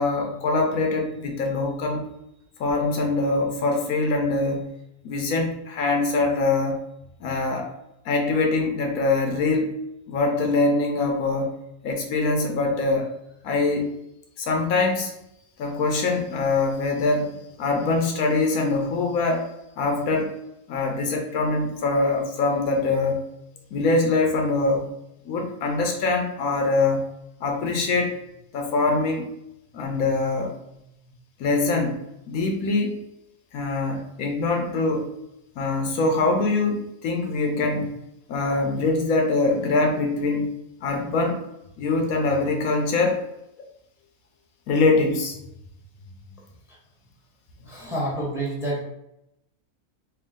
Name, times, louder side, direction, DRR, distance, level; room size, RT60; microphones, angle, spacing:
voice 1, 0.0-2.0 2.6-4.6 5.0-6.8 7.2-7.7 8.0-9.7 10.1-11.5 11.8-13.1 13.4-13.9 14.4-15.1 15.6-19.5 19.8-20.4 20.7-23.2 23.7-24.9 25.3-27.0 27.4-28.1 28.5-29.3 29.7-30.5 31.4-32.0 32.3-33.0 33.5-35.1 35.6-37.9 38.3-40.5 40.8-41.4 41.8-43.2 44.7-45.4 47.8-47.9, left 3 dB, 75° left, 2 dB, 1.1 m, -23 dB
voice 2, 47.6-48.8, right 1 dB, ahead, -4 dB, 0.8 m, -28 dB
3.5 x 2.4 x 3.5 m, 0.83 s
omnidirectional pair, 1.5 m